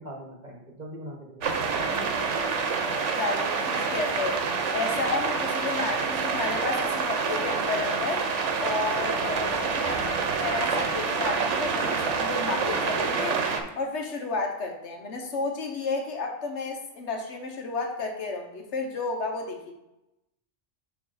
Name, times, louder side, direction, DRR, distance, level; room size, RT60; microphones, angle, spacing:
voice 1, 0.0-2.1, right 1 dB, 40° right, -1 dB, 1.3 m, -42 dB
sound 1, 1.4-13.6, right 5 dB, 90° right, 1.1 m, -27 dB
voice 2, 3.1-4.4 4.7-8.3 8.6-13.4 13.8-19.7, left 3 dB, 75° left, 3 dB, 1.3 m, -32 dB
7.0 x 3.2 x 5.4 m, 0.94 s
omnidirectional pair, 1.2 m